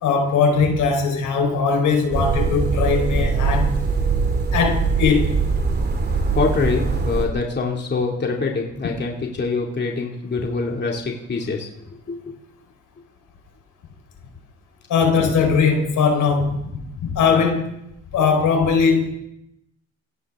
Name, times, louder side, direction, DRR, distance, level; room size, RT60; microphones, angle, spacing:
voice 1, 0.0-3.7 4.5-5.4 14.9-17.7 18.1-19.1, left 5 dB, 80° left, 4.3 m, -19 dB
sound 1, 2.1-7.3, right 4 dB, 35° right, 2.5 m, -22 dB
voice 2, 6.3-12.3 17.3-17.4, left 4 dB, 35° left, 2.5 m, -25 dB
22.0 x 16.5 x 3.7 m
cardioid pair, 90°, 30 cm